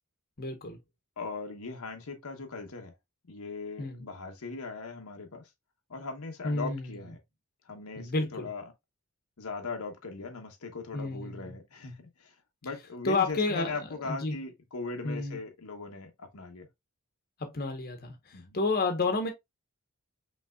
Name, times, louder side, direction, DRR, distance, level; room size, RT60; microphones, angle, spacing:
voice 1, 0.4-0.8 3.8-4.0 6.4-7.0 8.0-8.5 10.9-11.5 13.0-13.8 14.0-14.3 15.0-15.4 17.4-19.3, left 3 dB, 45° left, 0.9 m, -30 dB
voice 2, 1.2-2.9 3.3-5.4 5.9-7.2 7.7-8.6 9.4-12.3 12.6-16.7 18.3-18.6, left 4 dB, 75° left, 0.9 m, -39 dB
5.5 x 3.3 x 2.2 m
head